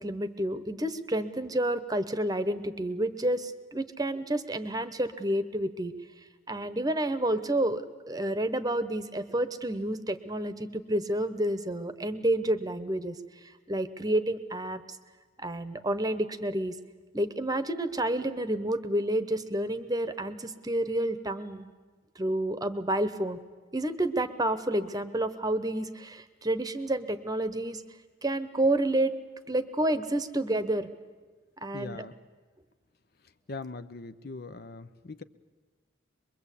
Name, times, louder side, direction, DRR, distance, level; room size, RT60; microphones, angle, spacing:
voice 1, 0.0-5.9 6.5-13.1 13.7-14.8 15.4-16.7 17.1-21.7 22.1-23.4 23.7-27.8 28.2-29.1 29.5-30.9 31.6-32.1, right 1 dB, 20° right, 12 dB, 1.0 m, -29 dB
voice 2, 31.7-32.1 33.5-35.2, left 3 dB, 50° left, 11 dB, 0.7 m, -41 dB
23.5 x 22.5 x 8.4 m, 1.4 s
head